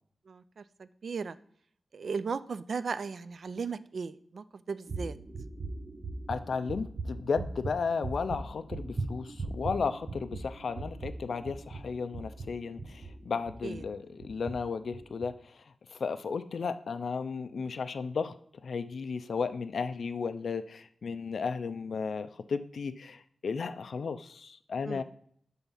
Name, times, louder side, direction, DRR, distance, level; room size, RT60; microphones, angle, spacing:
voice 1, 0.3-1.4 1.9-5.2 13.6-13.8 24.8-25.0, right 5 dB, 60° right, 14 dB, 0.3 m, -36 dB
sound 1, 4.9-13.8 14.2-14.5 14.9-15.2, right 3 dB, 40° right, 0.8 m, -39 dB
voice 2, 6.3-15.6 15.9-18.3 18.6-25.0, left 5 dB, 65° left, 9 dB, 0.4 m, -34 dB
7.0 x 3.5 x 5.6 m, 0.63 s
wide cardioid pair, 145°, 0 cm